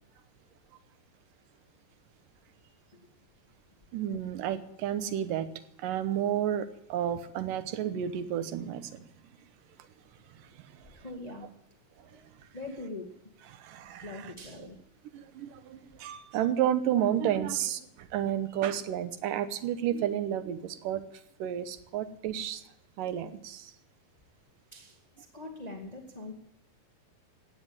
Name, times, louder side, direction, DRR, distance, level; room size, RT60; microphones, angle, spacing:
voice 1, 2.6-3.1 10.8-11.5 12.1-12.3 12.5-13.1 13.5-13.6 14.0-14.8 18.5-18.7 24.7-26.3, left 2 dB, 35° left, 2 dB, 0.6 m, -43 dB
voice 2, 3.9-5.5 5.8-9.0 10.4-11.0 13.5-14.3 15.1-21.0 21.4-22.6 23.0-23.7, right 10 dB, 70° right, 12 dB, 2.3 m, -31 dB
16.5 x 9.6 x 8.7 m, 0.83 s
omnidirectional pair, 4.4 m